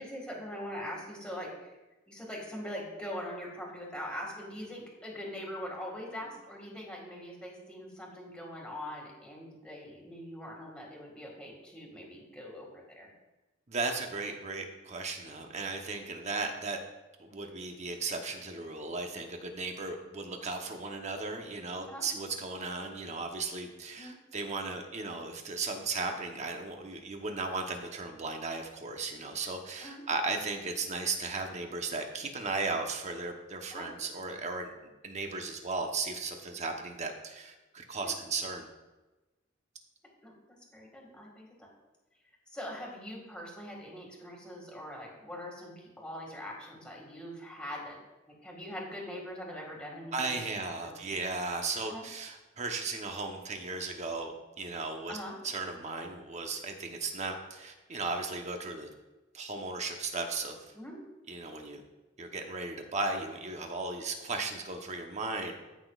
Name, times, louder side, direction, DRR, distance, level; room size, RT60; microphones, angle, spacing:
voice 1, 0.0-1.8 2.1-13.1 21.9-22.0 24.0-24.2 29.8-30.0 33.7-33.9 38.0-38.1 40.2-41.7 42.5-48.0 48.4-51.0 51.9-52.0 55.1-55.4 60.7-61.0, equal, 5° left, -2 dB, 2.0 m, -42 dB
voice 2, 13.7-16.8 17.2-34.7 35.0-38.7 50.1-55.2 55.4-58.9 59.3-60.7 61.3-61.8 62.2-65.5, right 3 dB, 35° right, 4 dB, 1.0 m, -36 dB
14.0 x 6.0 x 2.4 m, 1.1 s
head